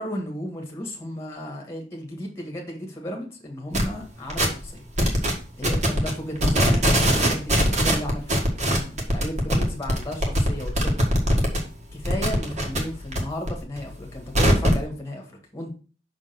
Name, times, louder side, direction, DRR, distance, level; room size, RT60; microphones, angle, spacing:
voice 1, 0.0-4.8 5.6-11.1 11.9-15.7, equal, 15° left, 1 dB, 1.6 m, -34 dB
sound 1, 3.7-3.9 4.3-4.7 5.0-5.3 5.6-6.1 6.4-11.6 11.9-13.2 13.5-14.8, equal, 35° right, 1.6 m, -21 dB
6.1 x 3.7 x 6.0 m, 0.37 s
head